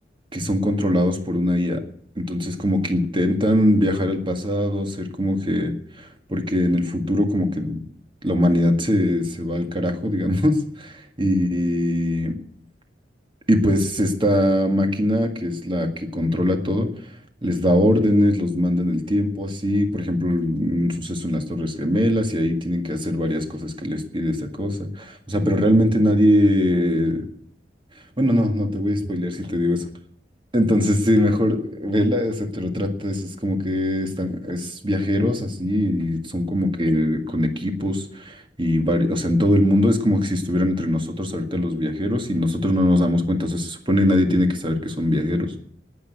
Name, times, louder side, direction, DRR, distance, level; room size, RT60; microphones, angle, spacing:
voice 1, 0.3-1.8 2.2-7.8 8.2-12.4 13.5-16.9 17.4-27.3 28.2-29.8 30.5-45.6, left 1 dB, 30° right, 4 dB, 1.9 m, -21 dB
19.0 x 6.5 x 9.4 m, 0.62 s
head